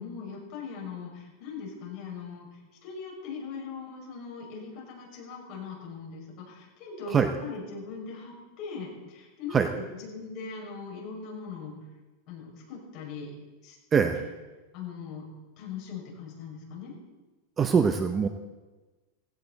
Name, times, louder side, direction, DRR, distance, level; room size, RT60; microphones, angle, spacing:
voice 1, 0.0-7.1 7.4-11.8 12.3-13.3 13.6-13.8 14.1-14.3 14.7-15.3 15.6-16.9, left 5 dB, 40° left, -2 dB, 5.8 m, -40 dB
voice 2, 13.9-14.2 17.6-18.3, right 6 dB, 15° right, 7 dB, 0.7 m, -23 dB
17.0 x 16.5 x 4.1 m, 1.2 s
supercardioid pair, 165°, 0 cm